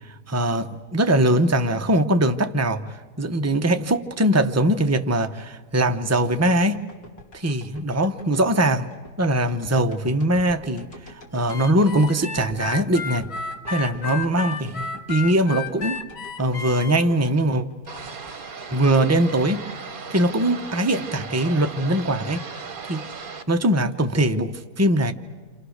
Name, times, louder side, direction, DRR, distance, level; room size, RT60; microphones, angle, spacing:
voice 1, 0.3-6.8 7.3-8.9 9.2-10.9 11.3-13.3 13.7-16.0 16.4-17.6 18.7-19.6 20.1-22.4 22.9-23.0 23.5-25.1, right 1 dB, 20° right, 0.4 m, -21 dB
sound 1, 6.3-18.5 18.9-19.0, left 1 dB, 65° left, 3.1 m, -46 dB
Harmonica, 11.5-17.0, left 5 dB, 45° left, 1.1 m, -32 dB
sound 2, 17.9-23.4, right 4 dB, 35° right, 1.0 m, -37 dB
29.0 x 27.0 x 6.5 m
omnidirectional pair, 1.8 m